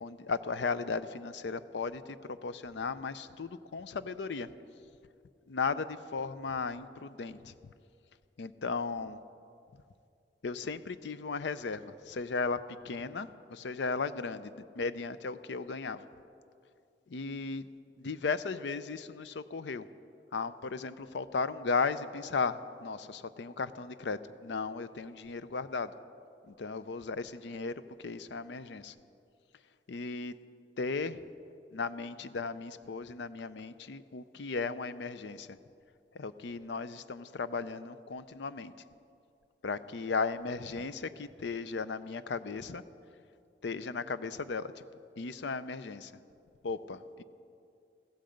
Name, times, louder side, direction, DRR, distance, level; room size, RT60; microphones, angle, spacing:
voice 1, 0.0-4.5 5.5-7.7 8.4-9.2 10.4-12.6 12.8-16.1 17.1-17.7 18.0-19.9 20.3-25.9 26.4-27.7 28.0-28.9 29.9-30.4 30.8-31.2 31.7-35.6 36.1-38.7 39.6-42.8 43.6-44.7 45.2-46.1 46.6-47.2, left 4 dB, 80° left, 14 dB, 0.5 m, -36 dB
15.0 x 13.0 x 5.1 m, 2.5 s
head